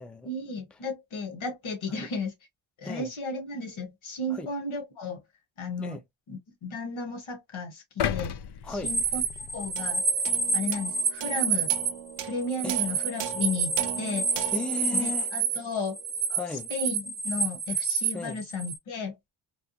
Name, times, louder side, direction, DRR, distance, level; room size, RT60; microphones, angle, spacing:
voice 1, 0.2-2.3 2.8-5.2 5.6-6.0 6.3-8.3 8.7-9.2 9.5-10.0 10.5-11.7 12.2-14.4 14.9-16.0 16.7-19.1, left 3 dB, 80° left, 1.5 m, -34 dB
sound 1, 8.0-10.2 10.6-10.8, left 9 dB, 60° left, 0.5 m, -34 dB
voice 2, 8.6-9.0 12.6-12.8 14.5-15.3 16.3-16.7 18.1-18.4, left 2 dB, ahead, 0.4 m, -35 dB
sound 2, 8.8-18.8, right 5 dB, 20° right, 0.8 m, -28 dB
sound 3, 9.8-16.4, right 9 dB, 70° right, 0.6 m, -39 dB
3.4 x 2.3 x 2.6 m
cardioid pair, 95°, 47 cm